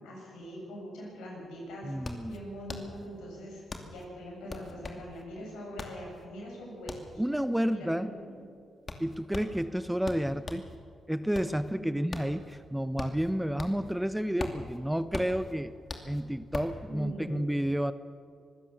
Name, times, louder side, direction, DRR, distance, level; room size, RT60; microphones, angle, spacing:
voice 1, 0.0-1.9 2.3-7.2 7.7-8.5 11.8-12.0 16.9-17.5, equal, 80° left, -2 dB, 7.3 m, -43 dB
sound 1, 1.4-10.7 11.1-14.0 14.2-16.8, left 3 dB, 45° left, 2.7 m, -41 dB
voice 2, 1.8-2.4 7.2-8.1 9.0-10.7 11.1-15.7 16.0-17.9, equal, 5° right, 13 dB, 1.0 m, -30 dB
25.0 x 16.0 x 7.1 m, 2.2 s
hypercardioid pair, 40°, 0 cm